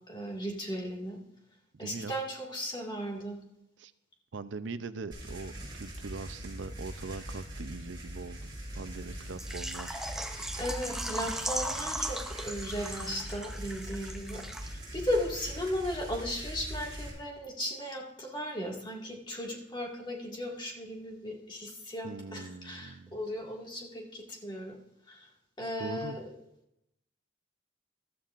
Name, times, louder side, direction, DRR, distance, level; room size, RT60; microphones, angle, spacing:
voice 1, 0.1-1.2 1.8-3.4 10.6-24.8 25.1-25.3 25.6-26.3, equal, 25° left, -1 dB, 2.0 m, -36 dB
voice 2, 1.7-2.1 3.8-3.9 4.3-10.0 22.0-23.1 25.8-26.2, right 4 dB, 80° right, 13 dB, 0.6 m, -41 dB
sound 1, 5.1-17.1, right 1 dB, 25° right, 4.0 m, -42 dB
Water / Liquid, 9.4-15.0 15.2-15.3 15.8-15.9, right 1 dB, ahead, 0.6 m, -38 dB
14.5 x 13.0 x 2.5 m, 0.83 s
head